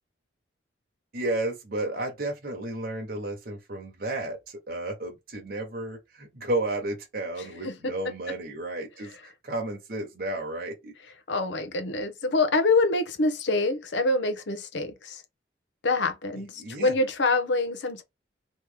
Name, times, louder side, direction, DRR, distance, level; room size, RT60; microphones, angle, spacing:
voice 1, 1.1-10.9 16.6-16.9, right 2 dB, 55° right, 1.0 m, -32 dB
voice 2, 11.3-15.2 15.8-18.0, left 3 dB, 90° left, 0.8 m, -25 dB
3.1 x 2.8 x 3.4 m
head